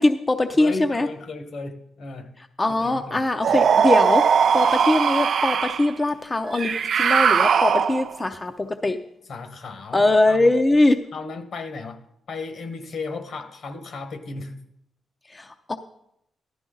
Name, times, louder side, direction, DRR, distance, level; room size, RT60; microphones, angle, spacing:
voice 1, 0.0-1.1 2.6-9.0 9.9-11.0 15.3-15.8, left 2 dB, 20° left, 6 dB, 0.6 m, -21 dB
voice 2, 0.5-2.3 2.8-3.2 9.3-10.5 11.1-12.0 12.3-14.6, left 3 dB, 65° left, 8 dB, 1.4 m, -35 dB
sound 1, 3.4-5.9 6.5-8.2, right 7 dB, 65° right, 0.3 m, -19 dB
14.0 x 12.0 x 3.9 m, 0.77 s
cardioid pair, 110°, 0 cm